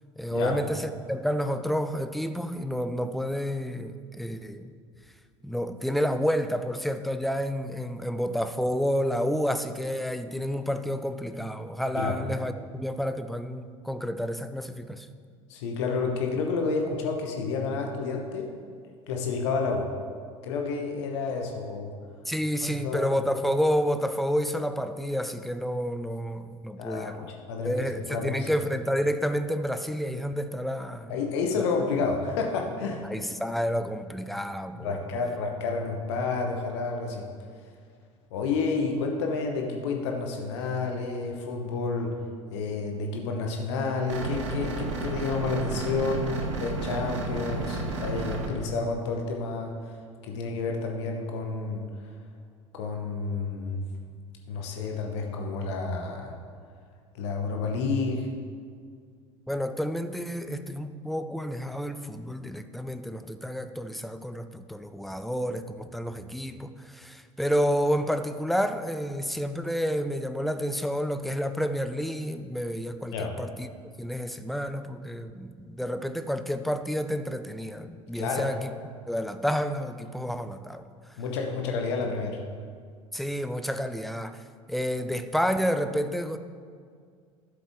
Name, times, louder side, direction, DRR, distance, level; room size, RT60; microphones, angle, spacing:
voice 1, 0.2-4.7 5.4-15.1 22.3-27.3 27.6-31.2 31.5-31.6 33.0-35.1 59.5-73.7 74.0-78.7 79.1-81.2 83.1-84.4 84.7-86.4, equal, ahead, 9 dB, 0.5 m, -30 dB
voice 2, 15.5-18.5 19.1-19.9 20.4-21.9 22.6-23.1 26.8-28.5 31.1-33.0 34.8-37.3 38.3-42.1 42.5-49.7 50.2-51.9 52.7-53.8 54.5-56.4 57.1-58.3 73.1-73.3 78.2-78.5 81.2-82.4, left 4 dB, 60° left, 2 dB, 1.1 m, -30 dB
sound 1, 44.1-48.5, right 3 dB, 65° right, 1.2 m, -32 dB
13.0 x 7.6 x 3.6 m, 2.1 s
figure-of-eight pair, 70°, 16 cm